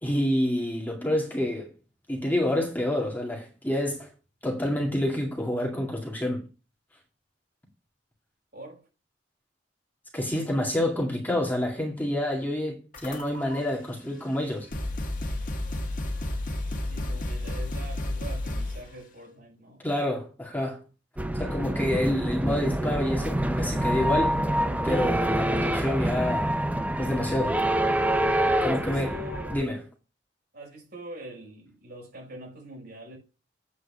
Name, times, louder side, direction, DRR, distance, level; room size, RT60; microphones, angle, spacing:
voice 1, 0.0-1.7 2.1-4.1 4.4-6.4 10.1-14.7 19.8-20.8 21.4-24.4 24.8-26.6 27.0-27.6 28.6-29.1 29.5-29.8, left 1 dB, 10° left, 2.2 m, -28 dB
voice 2, 8.5-8.8 16.8-19.9 21.8-22.1 28.6-29.8 30.5-33.2, equal, 55° right, 5.8 m, -43 dB
sound 1, 12.9-13.6 14.3-14.4 14.7-18.9, left 1 dB, 45° left, 1.9 m, -31 dB
sound 2, 21.2-29.6, right 1 dB, 10° right, 0.8 m, -26 dB
8.6 x 4.7 x 7.3 m
head